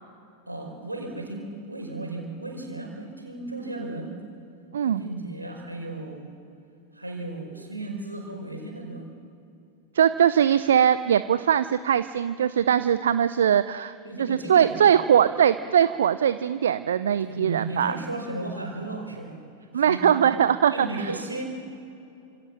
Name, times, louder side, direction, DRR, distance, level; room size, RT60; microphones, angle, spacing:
voice 1, 0.5-4.2 4.8-6.3 6.9-9.0 14.0-14.9 17.2-19.4 19.7-20.4 20.7-21.5, right 2 dB, 85° right, 2 dB, 4.9 m, -35 dB
voice 2, 4.7-5.1 9.9-13.9 14.2-18.0 19.7-21.1, right 9 dB, 65° right, 14 dB, 0.6 m, -21 dB
29.0 x 26.5 x 7.4 m, 2.7 s
figure-of-eight pair, 90°, 0 cm